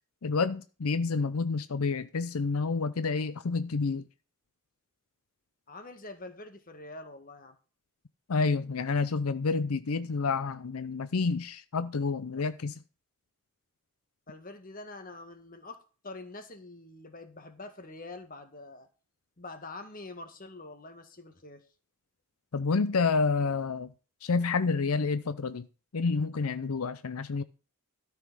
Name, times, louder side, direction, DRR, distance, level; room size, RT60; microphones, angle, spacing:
voice 1, 0.2-4.0 8.3-12.8 22.5-23.9 24.2-25.7 25.9-27.4, left 4 dB, 90° left, 0.6 m, -29 dB
voice 2, 5.7-7.6 12.4-12.5 14.3-18.9 19.4-21.6, left 2 dB, 40° left, 1.8 m, -45 dB
13.0 x 5.9 x 6.2 m
head